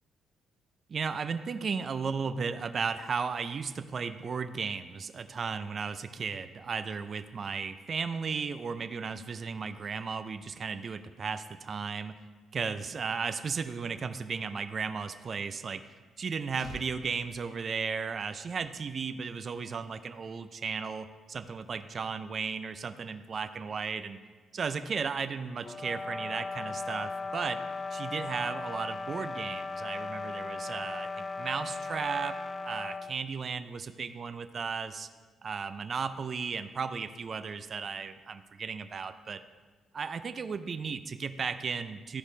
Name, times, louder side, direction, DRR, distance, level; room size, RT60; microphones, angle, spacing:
voice 1, 0.9-12.2 12.5-15.8 16.2-24.2 24.5-27.6 27.9-31.1 31.4-32.3 32.6-35.1 35.4-39.4 39.9-42.2, right 5 dB, 45° right, 10 dB, 0.4 m, -35 dB
sound 1, 16.1-18.5 18.8-19.1, left 1 dB, 60° left, 1.6 m, -50 dB
sound 2, 25.6-33.1, left 3 dB, 30° left, 0.3 m, -37 dB
13.0 x 5.0 x 3.2 m, 1.4 s
cardioid pair, 90°, 0 cm